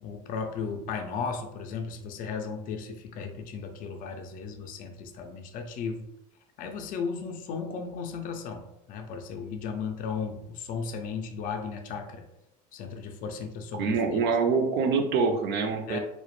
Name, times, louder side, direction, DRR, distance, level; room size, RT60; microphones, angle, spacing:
voice 1, 0.0-6.1 6.6-12.3 12.7-14.3 15.9-16.0, left 5 dB, 40° left, 5 dB, 0.4 m, -35 dB
voice 2, 13.8-16.0, right 5 dB, 55° right, 4 dB, 0.5 m, -25 dB
2.1 x 2.0 x 3.0 m, 0.85 s
supercardioid pair, 95°, 21 cm